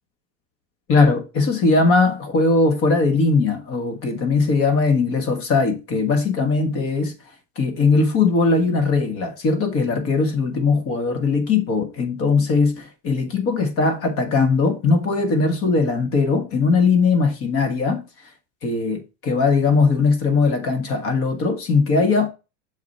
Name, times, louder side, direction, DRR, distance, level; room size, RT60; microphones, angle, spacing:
voice 1, 0.9-7.1 7.5-18.0 18.6-22.3, left 4 dB, 40° left, 1.6 m, -19 dB
6.9 x 4.8 x 4.2 m
supercardioid pair, 130°, 35 cm